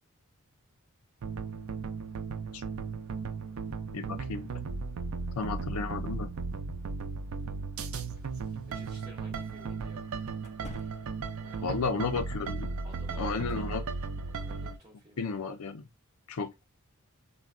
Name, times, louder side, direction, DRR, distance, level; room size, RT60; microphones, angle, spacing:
sound 1, 1.2-14.8, right 4 dB, 70° right, 0.4 m, -36 dB
voice 1, 3.9-4.5 5.4-6.3 11.6-12.7 13.1-13.8 15.2-15.8 16.3-16.6, left 4 dB, 80° left, 0.6 m, -33 dB
sound 2, 8.2-8.3 10.4-11.4, left 1 dB, 30° left, 0.3 m, -47 dB
voice 2, 8.6-10.1 11.4-12.1 12.8-13.7 14.3-15.5, right 1 dB, 20° right, 0.7 m, -55 dB
3.8 x 2.2 x 2.3 m
head